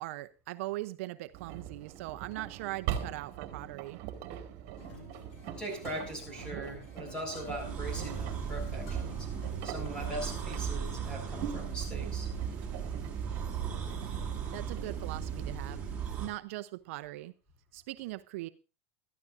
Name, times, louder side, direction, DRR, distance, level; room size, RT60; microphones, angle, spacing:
voice 1, 0.0-4.0 14.5-15.8 16.2-17.3 17.7-18.5, right 18 dB, 65° right, 0.7 m, -40 dB
Engine, 1.3-15.5, right 10 dB, 50° right, 2.2 m, -43 dB
sound 1, 4.8-10.7, left 4 dB, 65° left, 6.4 m, -52 dB
voice 2, 5.6-9.3 9.6-12.3, right 1 dB, 10° left, 6.8 m, -40 dB
sound 2, 7.4-16.3, right 7 dB, 15° right, 4.5 m, -36 dB
21.0 x 13.0 x 2.6 m
supercardioid pair, 150°, 8 cm